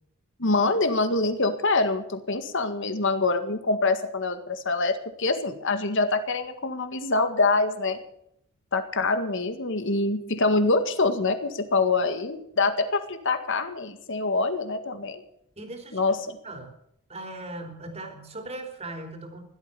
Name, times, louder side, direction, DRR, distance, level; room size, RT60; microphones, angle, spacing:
voice 1, 0.4-8.0 8.7-15.2 15.9-16.4, left 3 dB, 55° left, 9 dB, 1.9 m, -25 dB
voice 2, 15.6-16.2 16.4-16.7 17.1-19.4, right 2 dB, 30° right, 4 dB, 3.4 m, -38 dB
16.0 x 12.5 x 6.9 m, 0.73 s
head